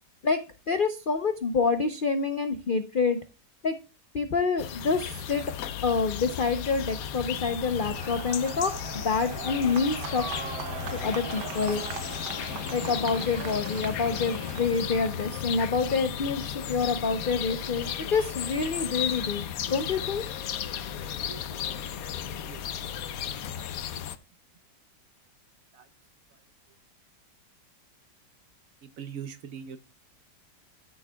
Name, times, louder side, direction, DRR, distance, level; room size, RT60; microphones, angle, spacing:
voice 1, 0.2-3.2 3.6-3.8 4.1-5.4 5.8-10.2 10.9-11.8 12.7-20.2, left 4 dB, 90° left, 0.4 m, -27 dB
sound 1, 4.6-24.2, left 9 dB, 65° left, 1.0 m, -35 dB
sound 2, 7.8-15.2, right 7 dB, 75° right, 1.5 m, -40 dB
voice 2, 21.3-21.8 22.4-22.9 23.2-23.6 25.7-25.9 28.8-29.8, right 7 dB, 60° right, 1.0 m, -43 dB
13.5 x 6.5 x 2.2 m
omnidirectional pair, 1.9 m